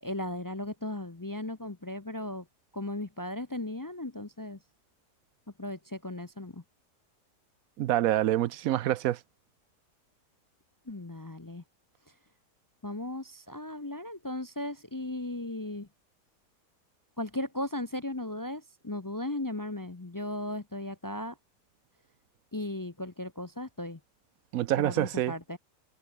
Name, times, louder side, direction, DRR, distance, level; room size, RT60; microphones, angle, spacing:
voice 1, 0.0-2.5 2.7-4.6 5.6-6.6 10.9-11.6 12.8-15.9 17.2-21.3 22.5-24.0 24.8-25.6, left 1 dB, 30° left, 0.3 m, -36 dB
voice 2, 7.8-9.2 24.5-25.3, right 13 dB, 65° right, 0.9 m, -26 dB
omnidirectional pair, 1.8 m